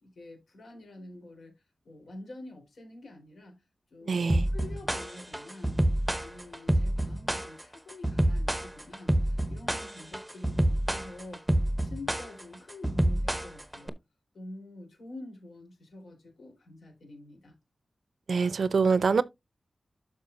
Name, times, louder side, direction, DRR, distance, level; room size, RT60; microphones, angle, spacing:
voice 1, 0.0-5.8 6.2-11.4 11.8-13.9 14.3-17.5, left 2 dB, 80° left, 3.8 m, -47 dB
voice 2, 4.1-4.5 18.3-19.2, right 5 dB, 70° right, 0.5 m, -25 dB
sound 1, 4.3-13.9, right 1 dB, 5° right, 0.7 m, -27 dB
12.0 x 4.8 x 2.6 m
wide cardioid pair, 125°, 0 cm